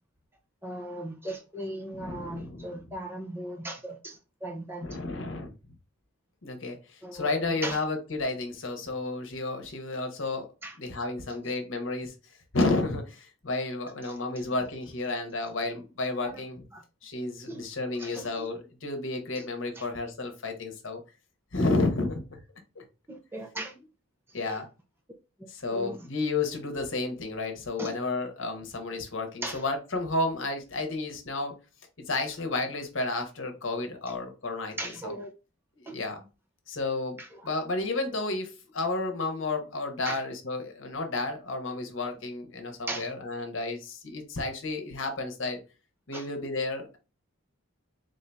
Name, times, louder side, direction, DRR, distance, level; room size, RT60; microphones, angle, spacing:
voice 1, 0.6-5.0 7.0-7.8 10.6-10.8 11.4-11.5 14.0-14.1 16.2-16.4 16.7-16.8 17.5-17.6 18.0-18.5 19.4-19.5 19.8-19.9 23.1-23.7 24.4-24.6 25.4-26.0 27.8-27.9 29.4-29.6 34.1-34.2 34.8-35.3 35.9-36.0 37.2-37.4 40.1-40.2 42.9-43.1 46.1-46.3, right 1 dB, 10° right, 0.6 m, -38 dB
voice 2, 1.9-2.7 4.8-5.7 6.4-10.5 10.8-12.1 12.5-16.6 17.0-21.0 21.5-22.2 22.8-22.9 24.3-24.7 25.5-31.5 32.1-35.1 35.7-36.2 36.7-45.6 46.1-47.0, left 2 dB, 65° left, 1.0 m, -31 dB
3.7 x 2.7 x 3.4 m
head